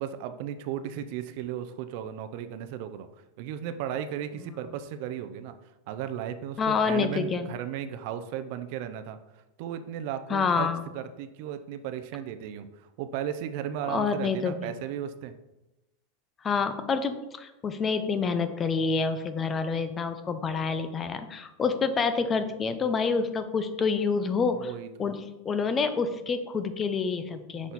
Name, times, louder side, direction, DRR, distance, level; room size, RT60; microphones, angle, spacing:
voice 1, 0.0-5.5 5.9-15.3 24.5-25.1 27.5-27.7, right 9 dB, 55° right, 10 dB, 0.5 m, -35 dB
voice 2, 6.6-7.5 10.3-10.8 13.9-14.7 16.4-24.7 25.0-27.7, left 5 dB, 20° left, 10 dB, 0.4 m, -27 dB
6.0 x 4.0 x 4.1 m, 0.97 s
supercardioid pair, 150°, 0 cm